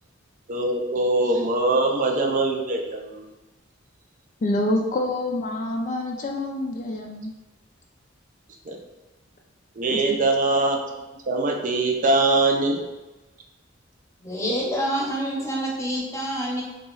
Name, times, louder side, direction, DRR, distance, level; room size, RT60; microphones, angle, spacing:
voice 1, 0.5-3.3 8.7-8.8 9.8-10.8 11.3-12.8, right 2 dB, 40° right, 1 dB, 0.4 m, -22 dB
voice 2, 4.4-7.3 9.9-10.2, left 1 dB, 40° left, 1 dB, 0.4 m, -27 dB
voice 3, 14.2-16.6, equal, 15° left, -3 dB, 0.8 m, -27 dB
2.9 x 2.8 x 3.8 m, 1.0 s
head